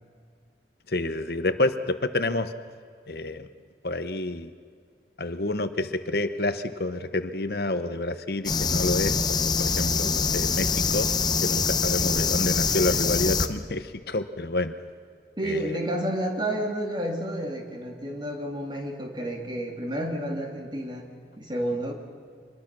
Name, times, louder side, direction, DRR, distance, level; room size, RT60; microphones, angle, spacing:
voice 1, 0.9-2.5 3.1-3.5 3.8-4.5 5.2-11.1 11.4-14.7 15.4-15.8, left 2 dB, 55° left, 10 dB, 0.9 m, -28 dB
sound 1, 8.4-13.5, left 5 dB, 20° left, 0.8 m, -24 dB
voice 2, 15.4-21.1 21.4-21.9, right 1 dB, 25° right, 2 dB, 2.5 m, -30 dB
25.0 x 21.0 x 6.1 m, 2.1 s
head